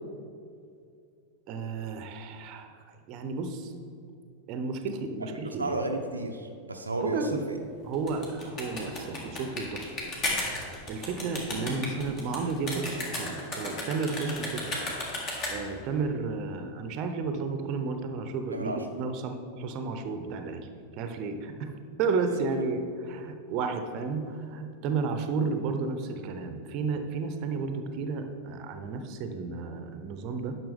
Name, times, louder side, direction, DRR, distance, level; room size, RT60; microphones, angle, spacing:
voice 1, 1.5-2.7 3.1-3.7 4.5-5.7 7.0-7.4 7.8-9.8 10.9-14.9 15.5-20.7 21.0-21.7 22.0-30.5, right 4 dB, 40° right, 7 dB, 0.7 m, -32 dB
voice 2, 5.4-7.6 18.5-19.0 22.5-22.6, right 2 dB, 80° right, 3 dB, 0.5 m, -33 dB
sound 1, 7.9-15.8, left 2 dB, 35° left, 1.9 m, -34 dB
10.5 x 5.9 x 3.5 m, 2.4 s
figure-of-eight pair, 90°, 0 cm